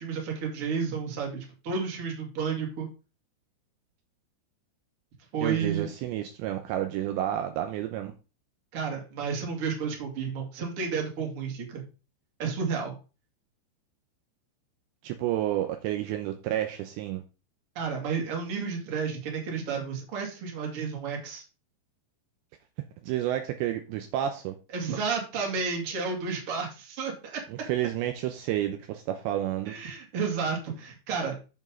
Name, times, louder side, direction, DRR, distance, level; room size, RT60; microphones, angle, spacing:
voice 1, 0.0-2.9 5.3-5.9 8.7-11.9 12.4-13.0 17.7-21.4 24.7-27.4 29.6-31.4, right 5 dB, 40° right, 1 dB, 2.4 m, -31 dB
voice 2, 5.4-8.1 15.0-17.2 23.0-24.6 27.5-29.8, right 12 dB, 80° right, 6 dB, 2.8 m, -30 dB
8.2 x 7.1 x 3.7 m, 0.32 s
omnidirectional pair, 5.5 m